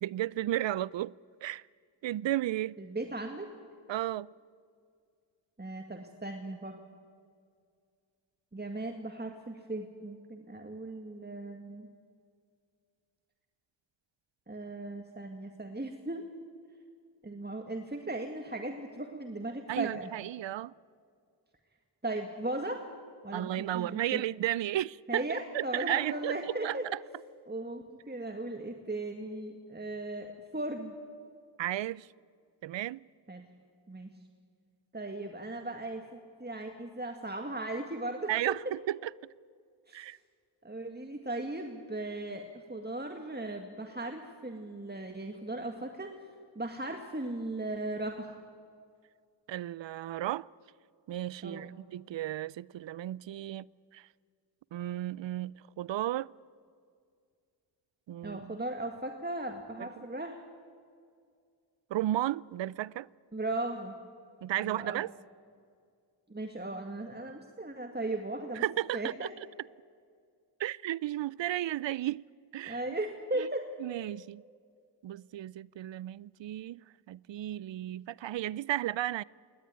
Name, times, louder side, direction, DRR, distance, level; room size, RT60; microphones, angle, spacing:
voice 1, 0.0-1.1 1.4-1.6 2.0-2.8 3.9-4.3 19.7-20.7 23.3-25.2 25.5-27.0 31.6-32.1 32.6-33.0 38.3-39.1 39.9-40.2 49.5-50.5 51.1-54.1 54.7-56.3 58.1-58.6 59.8-60.0 61.9-63.1 64.4-65.1 68.5-69.3 70.6-72.2 72.5-72.9 73.4-73.5 73.8-74.4 75.0-79.2, right 13 dB, 75° right, 0.5 m, -34 dB
voice 2, 2.8-3.5 5.6-6.8 8.5-11.9 14.5-16.2 17.2-20.1 22.0-22.8 23.2-24.2 25.1-26.9 27.5-30.9 33.3-33.4 33.9-34.1 34.9-38.6 39.9-40.1 40.6-46.1 46.6-48.4 51.4-51.8 58.2-60.4 63.3-63.9 64.6-65.0 66.3-68.6 68.9-69.3 72.7-73.7, right 2 dB, 20° right, 2.0 m, -37 dB
21.0 x 18.0 x 9.6 m
cardioid pair, 40°, 45 cm